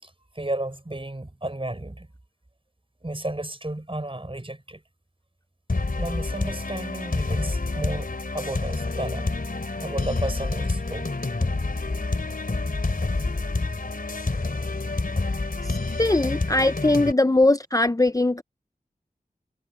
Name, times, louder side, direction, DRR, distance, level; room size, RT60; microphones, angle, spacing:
voice 1, 0.0-2.1 3.0-4.8 6.0-9.3 9.8-11.2, right 1 dB, 35° right, 5.7 m, -33 dB
sound 1, 5.7-17.1, left 3 dB, 70° left, 3.4 m, -28 dB
voice 2, 16.0-18.4, left 2 dB, 25° left, 0.6 m, -20 dB
wide cardioid pair, 40°, 15 cm